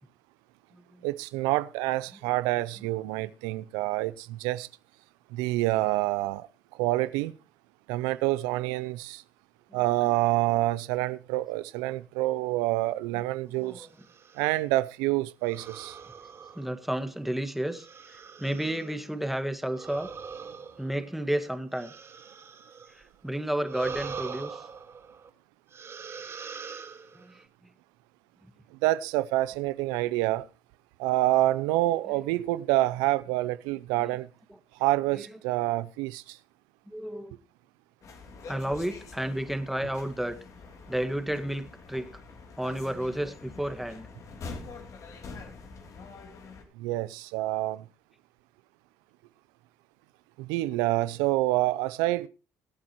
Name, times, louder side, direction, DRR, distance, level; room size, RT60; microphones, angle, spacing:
voice 1, 1.0-4.7 5.3-6.5 6.7-7.3 7.9-9.2 9.7-13.9 14.4-16.0 28.8-30.5 31.0-34.3 34.8-36.4 46.8-47.8 50.4-52.3, right 17 dB, 90° right, 0.5 m, -27 dB
voice 2, 9.8-10.1 13.5-14.0 16.6-20.1 20.8-21.9 23.2-24.6 27.1-27.4 32.1-32.3 34.0-34.2 34.5-34.6 35.1-35.4 36.9-37.3 38.5-40.4 40.9-42.2 42.6-44.1, right 1 dB, 5° right, 1.9 m, -32 dB
sound 1, 13.8-14.5 15.4-17.1 17.7-19.0 19.7-23.1 23.6-25.3 25.7-27.4, right 6 dB, 45° right, 4.2 m, -43 dB
sound 2, 38.0-46.6, left 4 dB, 55° left, 3.1 m, -45 dB
23.0 x 8.6 x 3.1 m
supercardioid pair, 80°, 7 cm